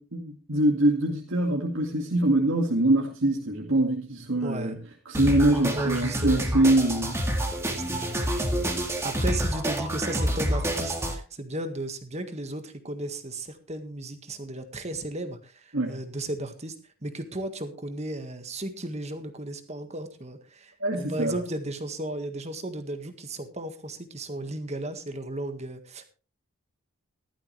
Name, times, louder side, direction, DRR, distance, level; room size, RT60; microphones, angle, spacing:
voice 1, 0.0-4.8 5.1-7.2 15.7-16.0 20.8-21.3, right 1 dB, 65° right, 0 dB, 2.1 m, -24 dB
voice 2, 4.4-4.8 5.7-6.5 7.7-8.2 8.8-16.7 17.0-26.0, right 1 dB, 30° right, 7 dB, 1.7 m, -35 dB
sound 1, 5.1-11.1, right 1 dB, 10° right, 2.1 m, -28 dB
16.0 x 13.0 x 3.3 m, 0.34 s
head